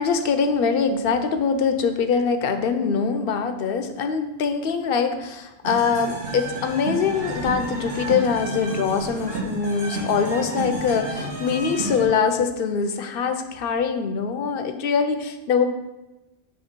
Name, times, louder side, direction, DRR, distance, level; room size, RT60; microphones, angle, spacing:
voice 1, 0.0-15.7, left 5 dB, 65° left, 7 dB, 0.7 m, -23 dB
sound 1, 5.6-12.0, right 2 dB, 65° right, 1.3 m, -31 dB
7.6 x 3.1 x 4.3 m, 1.0 s
omnidirectional pair, 1.1 m